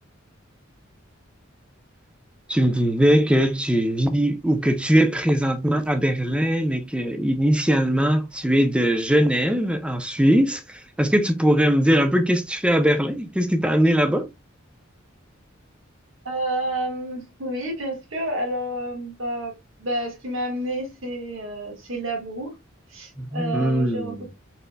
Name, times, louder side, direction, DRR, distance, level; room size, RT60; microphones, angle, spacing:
voice 1, 2.5-14.2 23.2-24.3, equal, 5° right, 0.5 m, -21 dB
voice 2, 16.2-19.5 19.8-22.5 22.9-24.3, right 1 dB, 70° right, 1.6 m, -29 dB
4.2 x 3.9 x 2.2 m
head